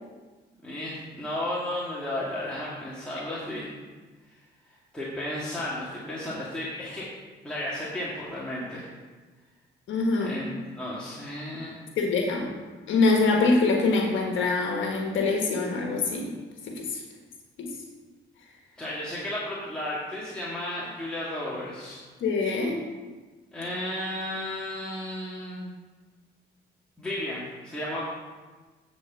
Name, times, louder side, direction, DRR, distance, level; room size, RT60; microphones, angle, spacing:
voice 1, 0.6-3.7 4.9-7.1 7.4-8.9 10.2-11.8 18.8-22.0 23.5-25.7 27.0-28.1, left 1 dB, 5° left, -8 dB, 2.0 m, -33 dB
voice 2, 9.9-10.3 12.0-12.5 12.9-16.3 16.8-17.0 17.6-17.7 22.2-22.8, left 3 dB, 75° left, 1 dB, 1.4 m, -24 dB
9.2 x 4.3 x 6.9 m, 1.3 s
cardioid pair, 90°, 20 cm